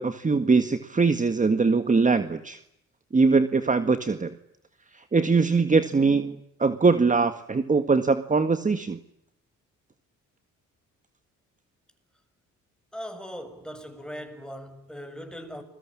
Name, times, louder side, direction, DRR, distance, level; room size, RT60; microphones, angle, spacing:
voice 1, 0.0-2.6 3.1-4.3 4.9-9.0, right 4 dB, 25° right, 1.8 m, -22 dB
voice 2, 12.9-15.6, equal, 5° left, 7.0 m, -39 dB
29.0 x 22.0 x 8.8 m
cardioid pair, 90°, 30 cm